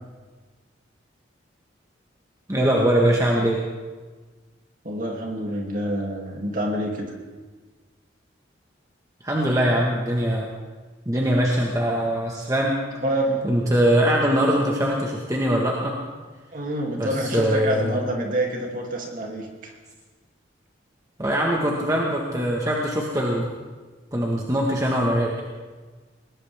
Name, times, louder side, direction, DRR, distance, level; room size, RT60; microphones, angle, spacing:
voice 1, 2.5-3.6 9.2-10.5 11.0-12.8 13.4-16.0 17.0-17.9 21.2-23.5 24.1-25.4, equal, 15° right, -2 dB, 1.5 m, -22 dB
voice 2, 4.8-7.1 13.0-13.5 16.5-19.7, right 1 dB, 45° right, 0 dB, 2.8 m, -27 dB
20.0 x 19.5 x 3.6 m, 1.4 s
head